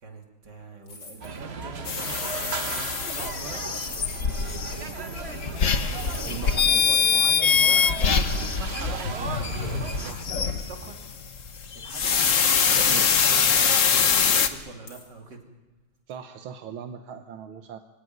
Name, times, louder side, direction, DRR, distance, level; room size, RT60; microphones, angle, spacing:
voice 1, 0.0-3.6 4.3-11.0 11.7-12.4 12.8-13.1 13.3-15.4, right 3 dB, 55° right, 2 dB, 3.5 m, -43 dB
sound 1, 0.9-1.4 2.1-2.9 3.5-4.5 5.8-7.2 7.5-7.7 8.1-10.0 10.3-11.0 11.5-11.6 12.2-13.1 14.9-15.1, left 3 dB, 80° left, 4.4 m, -44 dB
sound 2, 1.2-10.1, right 5 dB, 40° right, 1.2 m, -36 dB
sound 3, 1.9-14.5, left 6 dB, 45° left, 1.3 m, -24 dB
voice 2, 6.2-7.0 8.9-9.3 10.1-10.3 12.8-13.1 16.1-17.8, right 8 dB, 85° right, 7 dB, 1.8 m, -39 dB
25.0 x 17.5 x 9.4 m, 1.1 s
omnidirectional pair, 2.2 m